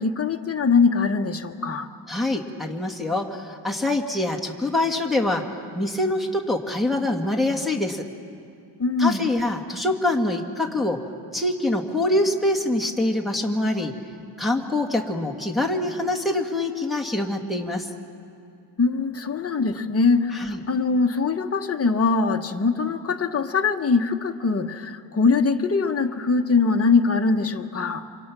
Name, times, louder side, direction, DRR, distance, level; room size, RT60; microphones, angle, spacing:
voice 1, 0.0-1.9 8.8-9.3 18.8-28.1, left 4 dB, 35° left, 4 dB, 1.1 m, -22 dB
voice 2, 2.1-5.4 5.7-8.1 9.0-11.0 11.3-13.9 14.4-17.9 20.4-20.6, left 1 dB, ahead, 0 dB, 1.9 m, -24 dB
28.5 x 26.5 x 6.1 m, 2.6 s
wide cardioid pair, 150°, 43 cm